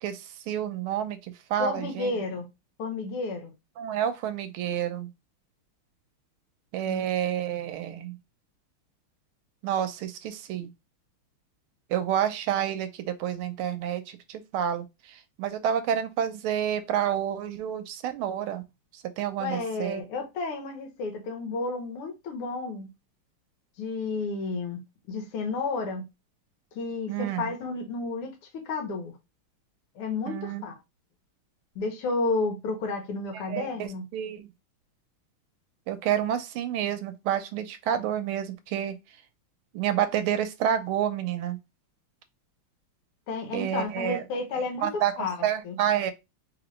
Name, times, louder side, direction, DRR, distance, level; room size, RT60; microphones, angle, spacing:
voice 1, 0.0-2.1 3.8-5.1 6.7-8.2 9.6-10.7 11.9-18.6 18.9-20.0 27.1-27.5 30.3-30.6 33.3-34.5 35.9-39.0 39.7-41.6 43.5-44.2 44.8-46.1, right 10 dB, 80° right, 1.4 m, -29 dB
voice 2, 1.6-2.4 2.8-3.5 6.9-7.0 19.4-22.9 23.8-24.8 25.1-26.0 26.8-29.1 30.0-30.7 31.8-34.0 43.3-45.4 45.6-45.8, left 3 dB, 85° left, 1.9 m, -31 dB
3.8 x 2.9 x 3.0 m
omnidirectional pair, 2.4 m